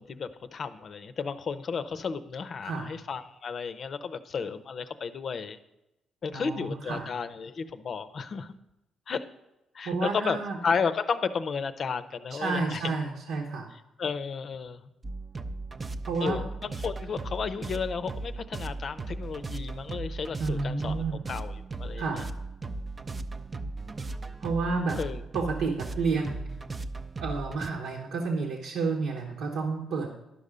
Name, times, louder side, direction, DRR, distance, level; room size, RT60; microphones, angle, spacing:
voice 1, 0.0-5.6 6.2-8.5 9.1-9.3 9.7-10.4 10.6-12.8 14.0-14.8 16.2-22.1 24.9-25.2, left 5 dB, 50° left, 12 dB, 0.6 m, -33 dB
voice 2, 6.3-7.1 9.8-10.6 12.3-13.7 16.1-16.4 20.4-21.2 22.0-22.3 24.4-25.0 25.3-26.5 27.2-30.1, right 4 dB, 85° right, -1 dB, 1.3 m, -30 dB
sound 1, 15.0-27.7, right 3 dB, 30° right, 0.5 m, -37 dB
11.5 x 5.4 x 5.0 m, 0.92 s
cardioid pair, 90°, 0 cm